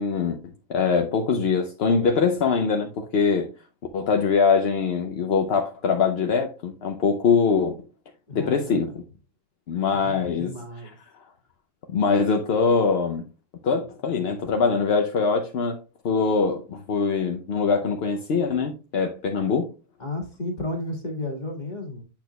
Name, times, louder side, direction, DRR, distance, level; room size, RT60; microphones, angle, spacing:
voice 1, 0.0-3.5 3.9-7.7 8.3-8.9 9.7-10.5 11.9-13.2 13.6-15.8 16.0-19.7, left 5 dB, 55° left, 0.8 m, -23 dB
voice 2, 8.3-8.9 9.9-11.0 20.0-22.0, left 2 dB, 30° left, 1.8 m, -33 dB
8.6 x 6.2 x 2.3 m
omnidirectional pair, 1.5 m